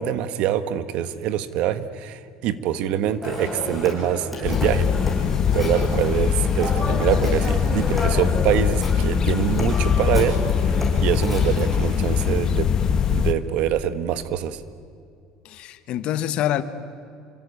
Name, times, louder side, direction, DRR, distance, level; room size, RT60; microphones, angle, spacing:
voice 1, 0.0-4.9 5.5-10.8 11.0-12.7 13.1-14.6, right 10 dB, 65° right, 11 dB, 1.5 m, -25 dB
Telephone, 3.2-12.3, left 1 dB, ahead, 7.3 m, -32 dB
sound 1, 4.4-13.3, left 7 dB, 30° left, 1.3 m, -22 dB
voice 2, 6.8-7.3 15.4-16.6, left 12 dB, 55° left, 11 dB, 1.5 m, -27 dB
28.0 x 24.5 x 8.6 m, 2.4 s
cardioid pair, 135°, 2 cm